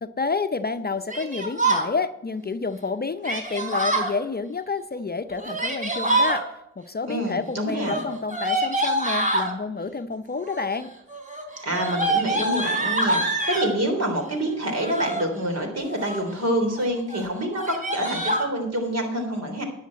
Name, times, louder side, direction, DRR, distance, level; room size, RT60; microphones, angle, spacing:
voice 1, 0.0-10.9, left 4 dB, 30° left, 10 dB, 0.7 m, -29 dB
Yell, 1.1-1.9 3.2-4.1 5.3-6.4 7.7-9.5 10.4-10.8 11.1-13.7 14.7-15.2 15.8-16.3 16.7-16.8 17.1-17.2 17.5-18.4, right 2 dB, 25° right, 3.8 m, -25 dB
voice 2, 7.1-8.0 11.6-19.6, right 1 dB, 55° right, 3 dB, 3.6 m, -27 dB
10.5 x 6.5 x 8.5 m, 0.84 s
supercardioid pair, 40°, 30 cm